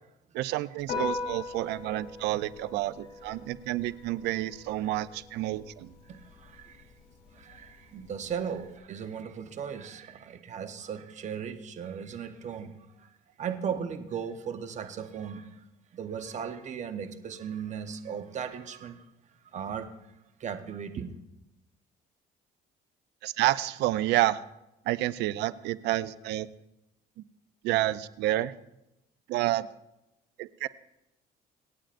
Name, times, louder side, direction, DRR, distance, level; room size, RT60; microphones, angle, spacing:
voice 1, 0.3-5.9 23.2-24.4 24.9-26.5 27.6-28.5 29.3-29.7 30.4-30.7, right 15 dB, 85° right, 0.5 m, -29 dB
Piano, 0.8-8.8, left 4 dB, 75° left, 3.8 m, -41 dB
voice 2, 6.0-6.9 7.3-13.1 13.4-15.6 15.9-19.1 19.4-19.9 20.4-21.2, right 7 dB, 45° right, 1.0 m, -37 dB
25.5 x 9.0 x 2.5 m
cardioid pair, 110°, 17 cm